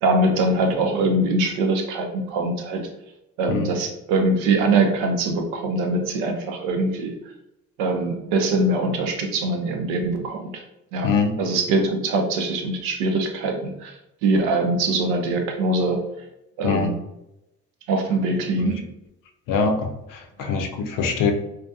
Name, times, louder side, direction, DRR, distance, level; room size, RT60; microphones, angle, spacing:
voice 1, 0.0-2.9 3.4-7.1 7.8-10.6 10.9-11.1 11.4-13.9 14.2-16.0 16.6-16.9 17.9-18.8 20.5-20.6, right 2 dB, 75° right, 4 dB, 0.6 m, -23 dB
voice 2, 11.0-11.3 16.6-16.9 18.6-18.8 19.5-21.3, left 5 dB, 60° left, 4 dB, 0.6 m, -23 dB
2.3 x 2.3 x 2.6 m, 0.88 s
hypercardioid pair, 50°, 38 cm